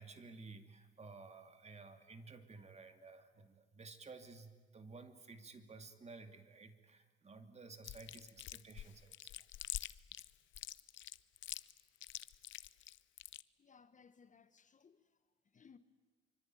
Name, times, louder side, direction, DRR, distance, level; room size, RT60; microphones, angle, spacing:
voice 1, 0.0-9.5, right 3 dB, 35° right, 2.7 m, -54 dB
Chewing mastication, 7.8-13.4, left 13 dB, 75° left, 0.7 m, -46 dB
voice 2, 13.6-15.2 15.4-15.8, left 6 dB, 40° left, 1.4 m, -63 dB
25.0 x 24.5 x 9.3 m
cardioid pair, 90°, 20 cm